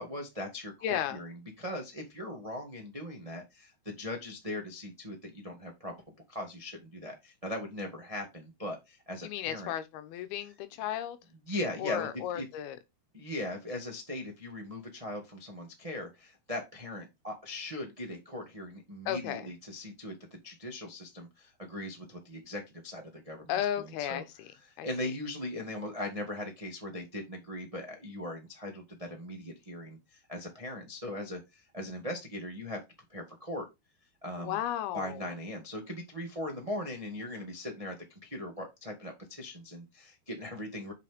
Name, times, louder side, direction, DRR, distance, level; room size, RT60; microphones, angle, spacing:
voice 1, 0.0-5.9 6.3-9.7 10.4-10.5 11.4-12.4 13.1-24.2 24.6-32.8 33.1-33.7 34.2-34.6 34.9-40.9, left 1 dB, 50° right, 0.4 m, -39 dB
voice 2, 0.8-1.2 9.2-11.2 11.8-12.8 19.1-19.5 23.5-24.5 24.8-24.9 34.4-35.3, left 11 dB, 90° left, 2.9 m, -34 dB
7.4 x 5.2 x 3.5 m
omnidirectional pair, 4.3 m